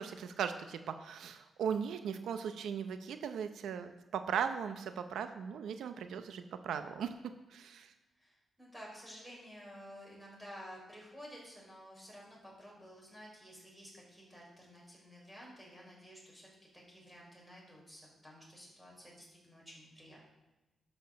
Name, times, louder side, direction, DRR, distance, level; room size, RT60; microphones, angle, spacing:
voice 1, 0.0-7.1 7.5-7.9, right 7 dB, 85° right, 8 dB, 0.7 m, -38 dB
voice 2, 8.2-16.5 16.7-20.2, equal, 5° right, -3 dB, 4.4 m, -52 dB
11.5 x 6.7 x 6.3 m, 1.1 s
wide cardioid pair, 135°, 0 cm